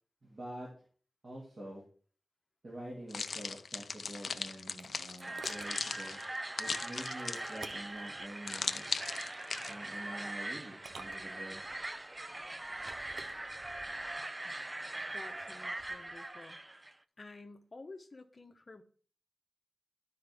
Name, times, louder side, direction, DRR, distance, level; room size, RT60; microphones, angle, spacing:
voice 1, 0.2-0.7 1.2-1.8 2.6-6.2 6.6-8.8 9.7-11.6, right 1 dB, 40° right, -5 dB, 2.4 m, -46 dB
sound 1, 3.1-7.7 8.5-9.7, left 5 dB, 65° left, 0.4 m, -38 dB
sound 2, 4.0-5.8 7.2-8.0 9.4-9.8 10.7-11.8 12.6-13.4, right 4 dB, 85° right, 0.7 m, -52 dB
sound 3, 5.2-16.9, right 2 dB, 20° right, 0.3 m, -42 dB
voice 2, 15.1-16.6 17.2-18.8, left 3 dB, 35° left, 5 dB, 0.9 m, -51 dB
12.5 x 4.6 x 3.5 m, 0.43 s
wide cardioid pair, 135°, 0 cm